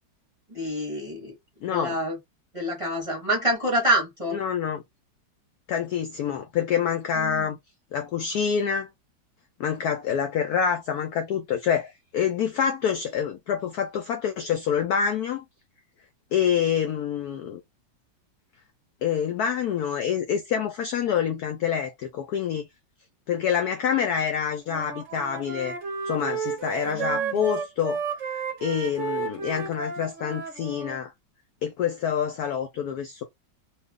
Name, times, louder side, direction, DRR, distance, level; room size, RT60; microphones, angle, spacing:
voice 1, 0.5-1.3 1.7-2.2 2.5-4.4 7.2-7.5 26.9-27.4, right 1 dB, 20° right, 0.9 m, -27 dB
voice 2, 1.6-2.0 4.3-4.8 5.7-7.6 7.9-8.9 9.6-15.4 16.3-17.6 19.0-22.7 23.3-25.8 26.0-28.0 28.6-31.1 31.6-33.2, left 8 dB, 80° left, 0.8 m, -26 dB
Wind instrument woodwind instrument, 24.7-31.0, right 5 dB, 55° right, 0.8 m, -32 dB
2.9 x 2.5 x 3.5 m
omnidirectional pair, 2.2 m